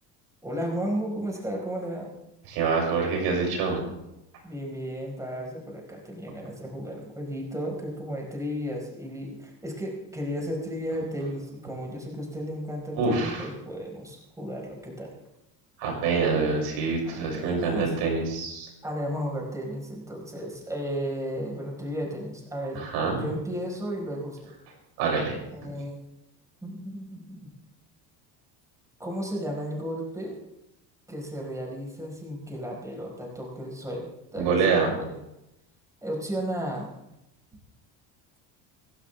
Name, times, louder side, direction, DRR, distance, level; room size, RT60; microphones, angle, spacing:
voice 1, 0.4-2.1 4.4-15.1 17.0-17.9 18.8-22.8 23.2-24.5 25.5-26.0 26.6-27.5 29.0-30.4 31.1-35.2 36.0-36.9, equal, 10° right, -1 dB, 4.7 m, -34 dB
voice 2, 2.5-3.8 12.9-13.5 15.8-18.7 22.7-23.3 25.0-25.4 34.4-34.9, right 4 dB, 85° right, 0 dB, 6.5 m, -26 dB
27.5 x 12.5 x 3.4 m, 0.88 s
cardioid pair, 125°, 40 cm